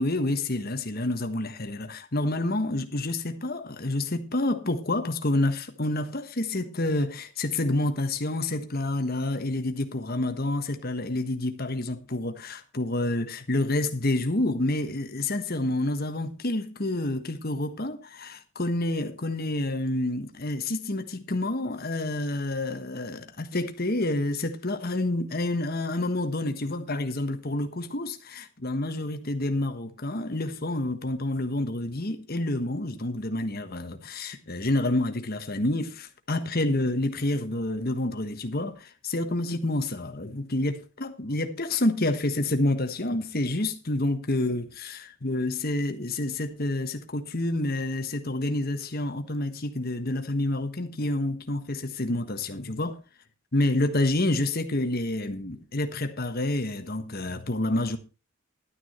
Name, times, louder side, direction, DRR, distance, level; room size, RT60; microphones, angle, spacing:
voice 1, 0.0-53.0 53.5-58.0, left 1 dB, 45° left, 1.3 m, -28 dB
12.0 x 9.5 x 4.4 m
head